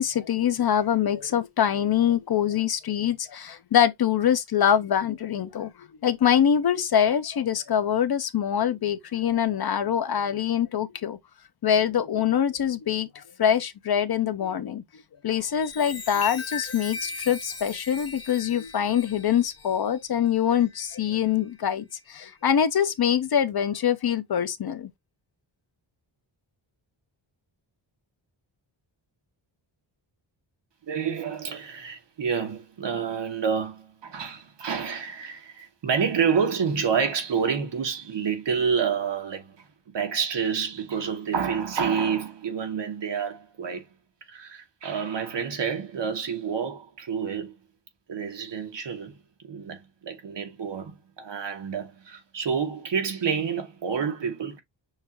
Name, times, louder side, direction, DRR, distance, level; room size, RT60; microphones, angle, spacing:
voice 1, 0.0-11.2 11.6-14.8 15.2-24.9, left 9 dB, 55° left, 0.6 m, -24 dB
Chime, 15.4-21.3 21.9-22.2, left 5 dB, 30° left, 1.3 m, -39 dB
voice 2, 30.8-39.6 39.9-43.8 44.3-47.5 48.1-49.1 49.4-54.6, right 6 dB, 60° right, 1.2 m, -28 dB
6.4 x 2.4 x 2.9 m
wide cardioid pair, 165°, 47 cm